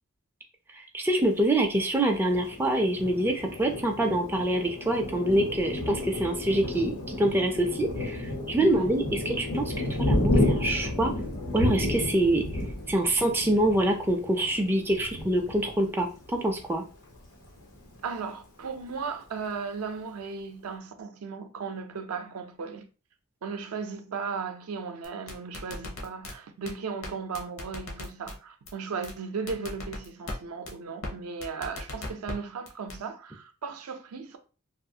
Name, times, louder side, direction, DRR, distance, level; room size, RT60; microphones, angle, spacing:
voice 1, 0.7-11.1 11.5-12.4 12.9-16.8, right 1 dB, 10° right, 0.3 m, -26 dB
Thunder, 2.3-16.6 17.1-17.3 17.6-18.2, left 1 dB, 90° left, 1.1 m, -31 dB
voice 2, 8.6-8.9 18.0-22.9 23.4-34.4, right 5 dB, 70° right, 0.4 m, -36 dB
sound 1, 25.0-26.3 26.7-26.8 27.0-27.1 27.3-28.3 28.7-28.8 29.0-29.1 29.5-30.4 30.7-30.8 31.0-31.1 31.4-32.3 32.7-33.0, left 2 dB, 65° left, 0.7 m, -37 dB
2.5 x 2.4 x 2.7 m
head